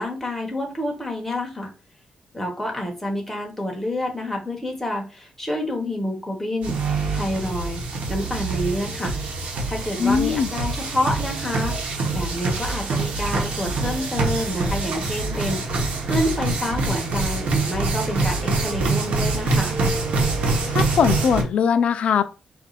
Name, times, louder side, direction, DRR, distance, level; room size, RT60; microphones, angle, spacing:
voice 1, 0.0-1.7 2.3-6.8 7.1-7.8 8.1-9.2 9.7-19.8, left 1 dB, 10° left, 1.2 m, -28 dB
sound 1, 6.6-21.4, right 3 dB, 75° right, 1.2 m, -25 dB
voice 2, 10.0-10.5 20.7-22.2, left 7 dB, 70° left, 0.5 m, -20 dB
4.4 x 2.6 x 4.1 m
wide cardioid pair, 145°, 2 cm